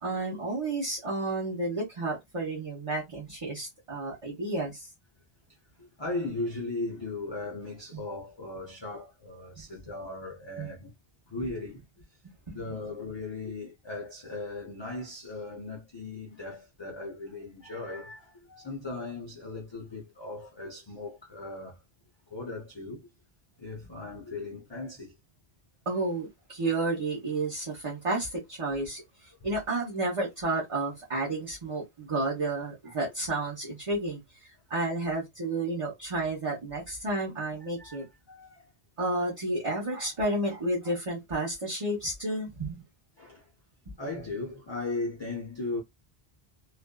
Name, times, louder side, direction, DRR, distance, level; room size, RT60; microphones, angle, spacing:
voice 1, 0.0-4.9 7.9-8.0 9.6-9.7 10.6-10.7 12.5-12.6 25.9-29.0 29.4-34.2 34.7-38.0 39.0-42.8, right 2 dB, 30° right, 0.9 m, -31 dB
voice 2, 5.8-10.9 11.3-11.8 12.5-21.8 22.3-23.1 23.6-25.1 37.6-38.7 43.2-43.5 44.0-45.8, left 2 dB, 30° left, 0.6 m, -37 dB
2.5 x 2.3 x 2.2 m
omnidirectional pair, 1.1 m